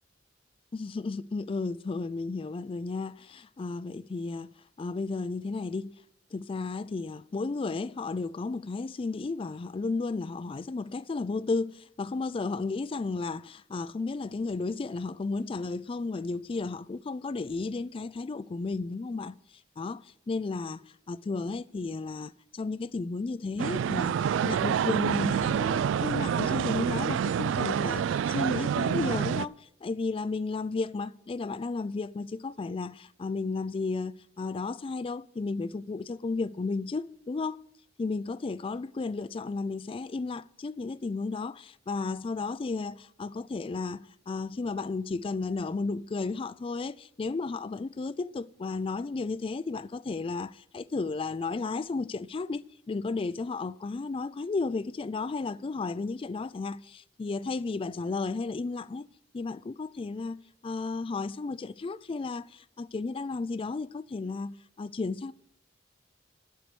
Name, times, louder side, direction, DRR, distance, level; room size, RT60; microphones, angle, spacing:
voice 1, 0.7-4.5 4.8-5.9 6.3-19.3 19.8-37.6 38.0-59.1 59.3-60.4 60.6-65.3, left 3 dB, 30° left, 0.3 m, -33 dB
sound 1, 23.6-29.5, right 8 dB, 80° right, 0.3 m, -27 dB
12.0 x 4.6 x 8.4 m
head